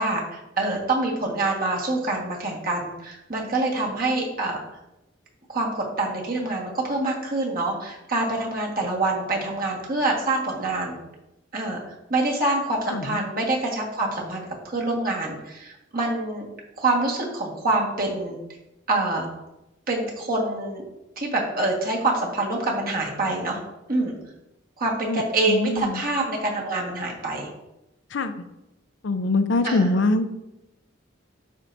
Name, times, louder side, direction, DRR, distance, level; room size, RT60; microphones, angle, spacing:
voice 1, 0.0-4.6 5.5-11.0 11.5-11.8 12.1-16.5 16.8-18.4 18.9-19.3 19.9-20.8 21.2-23.6 23.9-24.1 24.8-27.5 29.6-29.9, right 2 dB, 50° right, -1 dB, 1.6 m, -26 dB
voice 2, 25.5-26.0 28.1-28.3 29.0-30.3, left 2 dB, 65° left, 10 dB, 0.5 m, -23 dB
12.0 x 4.5 x 2.6 m, 0.94 s
head